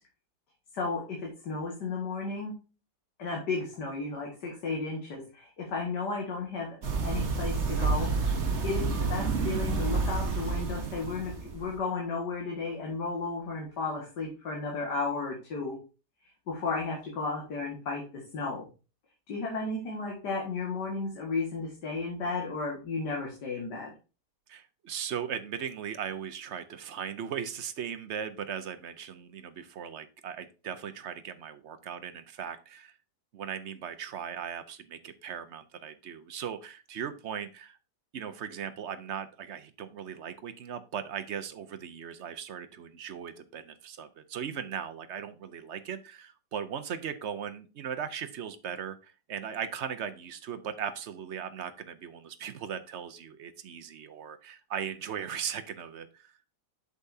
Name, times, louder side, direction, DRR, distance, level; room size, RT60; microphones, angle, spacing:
voice 1, 0.7-2.5 3.2-6.7 7.0-8.1 8.6-15.8 16.5-18.7 19.3-23.9, left 4 dB, 65° left, -1 dB, 2.4 m, -34 dB
sound 1, 6.8-11.7, right 4 dB, 40° right, 1.4 m, -29 dB
voice 2, 24.5-32.9 33.3-37.8 38.1-56.3, right 8 dB, 60° right, 10 dB, 0.7 m, -38 dB
8.3 x 6.7 x 2.7 m, 0.32 s
omnidirectional pair, 1.9 m